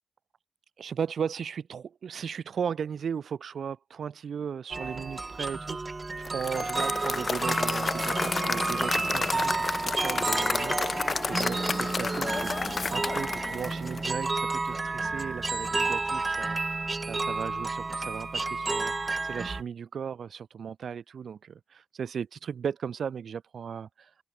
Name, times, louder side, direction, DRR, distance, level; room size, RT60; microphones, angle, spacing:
voice 1, 0.8-16.6 17.1-18.9 19.2-24.1, right 7 dB, 85° right, 3.8 m, -36 dB
sound 1, 4.7-19.6, right 3 dB, 35° right, 0.9 m, -31 dB
Applause / Crowd, 6.2-14.4, left 4 dB, 45° left, 1.0 m, -31 dB
wide cardioid pair, 80°, 0 cm